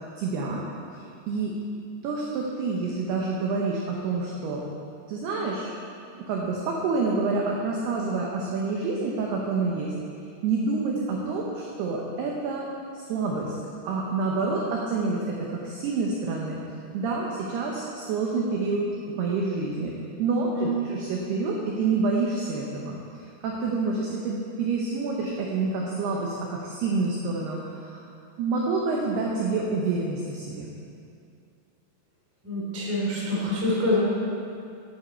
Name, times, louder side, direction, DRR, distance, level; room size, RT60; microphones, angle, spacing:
voice 1, 0.2-0.6 0.9-1.5 2.0-4.6 5.1-5.7 6.3-9.9 10.4-12.7 12.9-13.5 13.8-16.6 16.9-18.9 19.2-19.9 20.2-23.0 23.4-28.0 28.4-30.7, right 3 dB, 85° right, -2 dB, 2.3 m, -28 dB
voice 2, 32.4-34.0, left 1 dB, 15° right, -6 dB, 0.5 m, -26 dB
11.5 x 10.0 x 4.4 m, 2.5 s
omnidirectional pair, 6.0 m